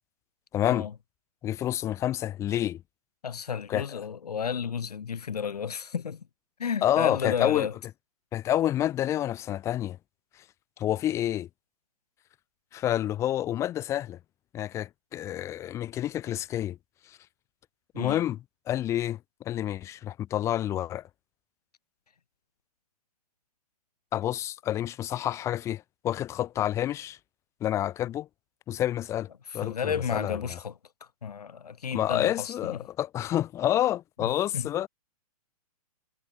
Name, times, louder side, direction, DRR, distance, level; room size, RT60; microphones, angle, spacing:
voice 1, 0.5-0.9 1.4-2.8 3.7-3.8 6.8-7.7 8.3-10.0 10.8-11.5 12.7-14.2 14.5-16.8 17.9-18.4 18.7-19.2 19.4-21.0 24.1-27.2 27.6-28.3 28.7-30.6 31.9-34.9, left 12 dB, 15° left, 0.6 m, -28 dB
voice 2, 3.2-6.2 6.6-7.7 17.9-18.2 29.5-30.7 31.2-32.8 34.2-34.7, left 7 dB, 90° left, 3.2 m, -32 dB
hypercardioid pair, 150°, 19 cm